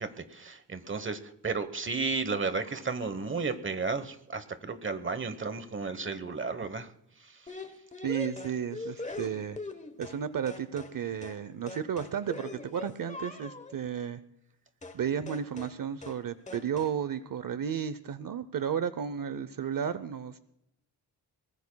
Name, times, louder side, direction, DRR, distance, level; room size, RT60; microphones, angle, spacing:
voice 1, 0.0-6.9 7.2-7.6, right 4 dB, 30° right, 11 dB, 1.0 m, -33 dB
sound 1, 7.5-10.2 10.5-11.0 11.2-11.4 11.7-13.8 14.8-15.0 15.3-15.8 16.0-16.2 16.5-17.0, left 3 dB, 20° left, 1.0 m, -42 dB
voice 2, 8.0-9.6 10.0-14.2 14.9-20.4, right 8 dB, 55° right, 13 dB, 0.7 m, -33 dB
23.0 x 19.5 x 2.2 m, 0.79 s
wide cardioid pair, 165°, 40 cm